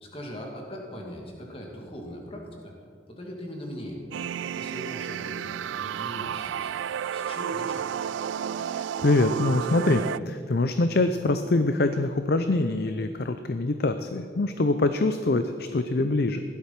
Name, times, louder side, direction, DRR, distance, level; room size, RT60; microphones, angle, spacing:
voice 1, 0.0-2.7 3.1-4.0 4.5-6.8 7.1-7.8, equal, 30° left, 0 dB, 2.4 m, -40 dB
sound 1, 4.1-10.2, right 8 dB, 90° right, 0.3 m, -32 dB
voice 2, 8.7-16.4, left 2 dB, 55° left, 9 dB, 0.6 m, -24 dB
16.0 x 12.0 x 5.9 m, 2.3 s
head